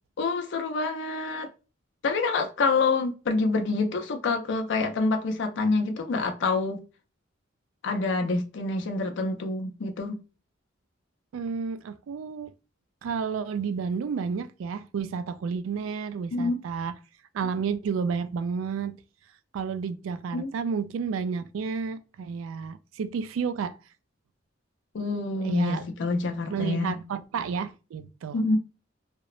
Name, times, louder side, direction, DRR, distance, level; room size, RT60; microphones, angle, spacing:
voice 1, 0.2-1.5 2.0-6.8 7.8-10.2 16.3-16.6 20.3-20.5 24.9-27.0 28.3-28.6, left 3 dB, 65° left, 0.4 m, -27 dB
voice 2, 11.3-12.5 13.0-16.9 17.3-19.0 19.5-23.8 25.4-25.8 26.5-28.4, right 6 dB, 90° right, 0.3 m, -31 dB
2.9 x 2.0 x 2.3 m
head